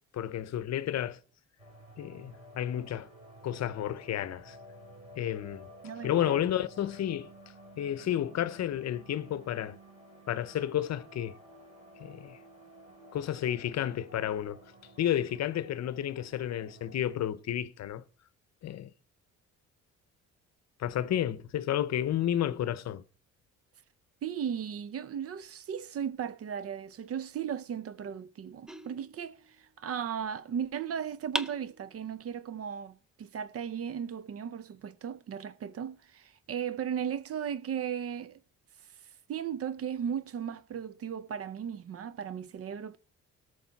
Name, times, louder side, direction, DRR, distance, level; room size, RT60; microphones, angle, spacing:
voice 1, 0.1-1.2 2.0-3.1 3.4-4.6 5.2-5.7 6.0-7.3 7.8-9.8 10.3-11.4 12.0-12.4 13.1-14.6 15.0-18.0 18.6-18.9 20.8-23.0, left 11 dB, 60° left, 0.7 m, -31 dB
sound 1, 1.6-17.2, equal, 25° right, 5.3 m, -53 dB
voice 2, 5.8-6.4 24.2-38.4 39.3-43.0, right 8 dB, 50° right, 0.6 m, -36 dB
sound 2, 28.7-29.8 31.3-32.4, equal, ahead, 0.5 m, -39 dB
17.0 x 6.6 x 4.0 m
cardioid pair, 90°, 30 cm